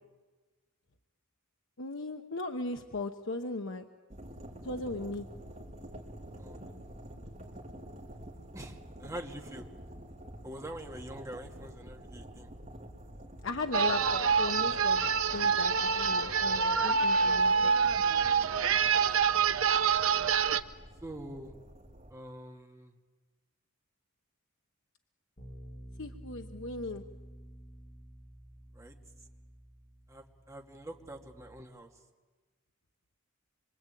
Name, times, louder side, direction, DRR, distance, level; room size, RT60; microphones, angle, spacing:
voice 1, 1.8-3.9 4.6-5.3 13.4-15.0 15.3-17.7 26.0-27.0, left 3 dB, 60° left, 5 dB, 1.0 m, -37 dB
sound 1, 4.1-22.1, right 1 dB, 35° right, 4.2 m, -48 dB
voice 2, 8.5-9.6 10.4-12.5 18.8-19.2 21.0-21.5 22.1-22.9 28.7-28.9 30.1-31.9, right 1 dB, 15° right, 1 dB, 2.4 m, -45 dB
sound 2, 13.7-20.6, right 6 dB, 70° right, 0.9 m, -26 dB
Bass guitar, 25.4-31.6, right 1 dB, 40° left, 5.0 m, -51 dB
25.5 x 24.5 x 9.2 m, 1.3 s
head